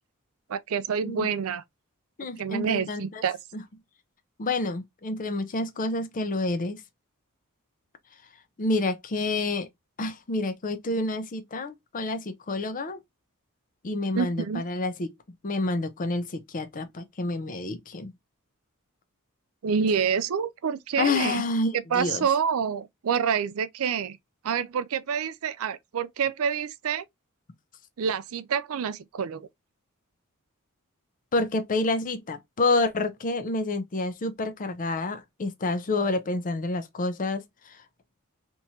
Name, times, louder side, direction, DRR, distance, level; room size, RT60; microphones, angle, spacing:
voice 1, 0.5-1.6 2.4-3.4 14.1-14.6 19.6-21.4 21.7-24.2 24.4-27.0 28.0-29.5, right 6 dB, 70° right, 0.4 m, -27 dB
voice 2, 2.2-3.2 4.4-6.8 8.6-9.7 10.0-13.0 13.8-15.1 15.4-18.1 21.0-22.3 31.3-37.4, left 2 dB, 40° left, 0.6 m, -28 dB
3.5 x 3.0 x 2.7 m
head